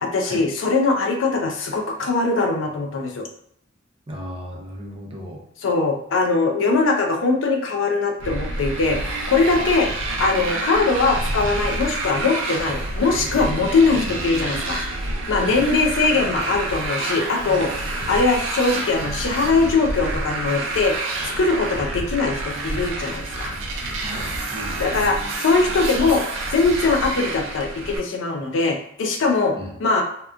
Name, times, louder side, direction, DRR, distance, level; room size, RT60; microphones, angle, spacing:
voice 1, 0.0-3.3 5.6-14.8 15.3-23.5 24.8-26.2 26.5-29.5 29.8-30.0, left 3 dB, 80° left, 2 dB, 0.5 m, -21 dB
voice 2, 4.1-5.4 14.0-14.2 15.4-15.7 24.0-25.2 29.6-29.7, equal, 30° right, -1 dB, 0.5 m, -35 dB
Motorcycle, 8.2-28.0, right 2 dB, 75° right, 0.5 m, -28 dB
2.8 x 2.2 x 2.4 m, 0.69 s
head